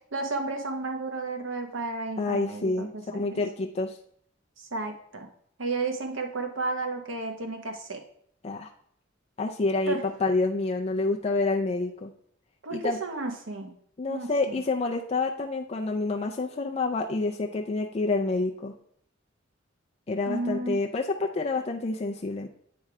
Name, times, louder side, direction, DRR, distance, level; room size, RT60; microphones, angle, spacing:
voice 1, 0.1-3.4 4.6-5.3 5.6-8.0 9.9-10.0 12.6-13.7 14.1-14.6 20.3-20.8, right 3 dB, 75° right, 4 dB, 1.1 m, -32 dB
voice 2, 2.2-4.0 8.4-8.7 9.4-12.1 12.7-13.0 14.0-18.7 20.1-22.5, left 3 dB, 30° left, 2 dB, 0.4 m, -28 dB
8.6 x 3.2 x 4.7 m, 0.66 s
head